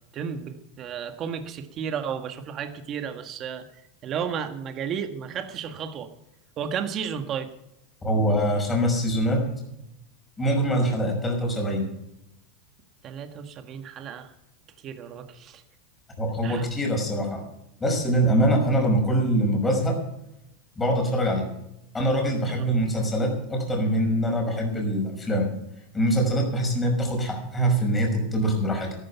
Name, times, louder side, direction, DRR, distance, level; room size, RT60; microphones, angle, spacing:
voice 1, 0.1-3.7 4.0-6.1 6.6-7.5 13.0-14.3 14.8-15.6 16.4-16.7 18.2-18.3 22.4-22.6, right 7 dB, 35° right, 7 dB, 1.6 m, -33 dB
voice 2, 8.0-9.4 10.4-11.8 16.2-17.4 17.8-20.0 20.8-21.5 21.9-25.5 25.9-28.9, equal, 15° left, 2 dB, 5.7 m, -23 dB
13.5 x 13.0 x 5.7 m, 0.82 s
supercardioid pair, 135°, 0 cm